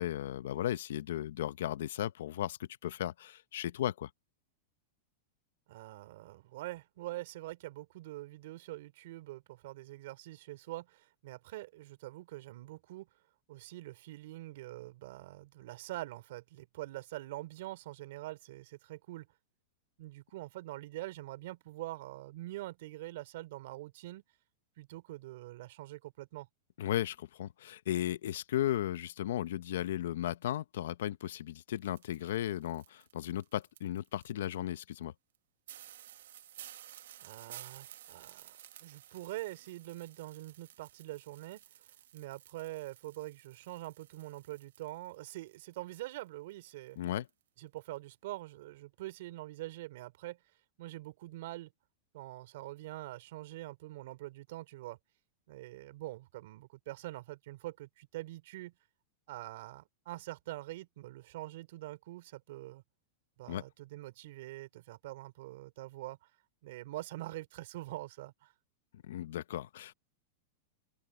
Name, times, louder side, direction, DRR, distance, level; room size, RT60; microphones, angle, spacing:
voice 1, 0.0-4.1 26.8-35.1 47.0-47.3 63.5-63.6 69.0-69.9, left 12 dB, 75° left, 0.8 m, -35 dB
voice 2, 5.7-13.1 13.5-19.3 20.0-24.2 24.8-26.5 37.2-41.6 42.1-47.0 47.6-50.4 50.8-51.7 52.1-55.0 55.5-58.7 59.3-62.8 63.4-66.2 66.6-68.5, right 17 dB, 60° right, 3.5 m, -44 dB
sound 1, 31.8-34.5 35.0-35.1 35.3-35.4 35.7-45.8 46.0-47.0 47.3-47.4 47.8-48.0, right 12 dB, 85° right, 1.2 m, -54 dB
open air
supercardioid pair, 160°, 0 cm